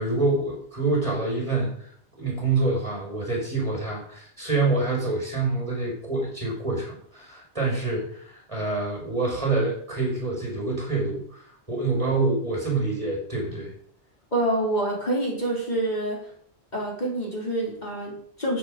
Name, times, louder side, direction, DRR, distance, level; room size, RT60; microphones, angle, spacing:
voice 1, 0.0-1.9 2.2-13.7, right 3 dB, 30° right, -1 dB, 5.4 m, -26 dB
voice 2, 14.3-16.2 16.7-18.6, right 1 dB, 40° left, -3 dB, 3.7 m, -27 dB
14.0 x 7.9 x 5.1 m, 0.62 s
omnidirectional pair, 1.2 m